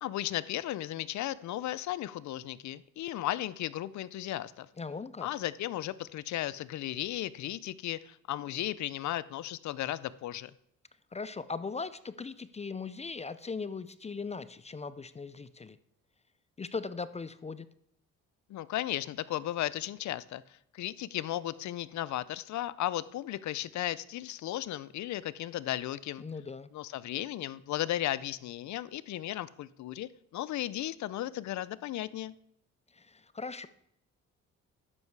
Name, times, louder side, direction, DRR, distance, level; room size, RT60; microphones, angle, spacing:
voice 1, 0.0-4.7 5.2-10.5 18.5-20.4 20.7-26.2 26.7-32.3, left 14 dB, 70° left, 18 dB, 0.6 m, -35 dB
voice 2, 4.8-5.3 11.1-15.8 16.6-17.7 26.2-26.7 32.9-33.7, left 4 dB, 20° left, 15 dB, 0.5 m, -39 dB
11.0 x 8.2 x 4.7 m, 0.75 s
cardioid pair, 90°, 30 cm